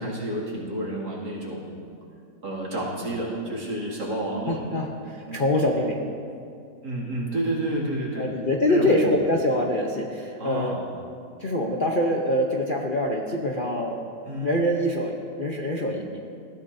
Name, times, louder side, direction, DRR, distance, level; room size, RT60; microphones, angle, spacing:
voice 1, 0.0-1.9 2.4-4.8 5.2-5.4 6.8-8.3 8.7-8.9 10.4-10.8 14.2-14.5, right 1 dB, 70° right, -4 dB, 2.9 m, -30 dB
voice 2, 4.5-6.0 8.2-10.8 11.4-14.0 14.4-16.2, left 1 dB, 40° left, 0 dB, 0.7 m, -25 dB
19.5 x 14.0 x 2.7 m, 2.4 s
omnidirectional pair, 1.9 m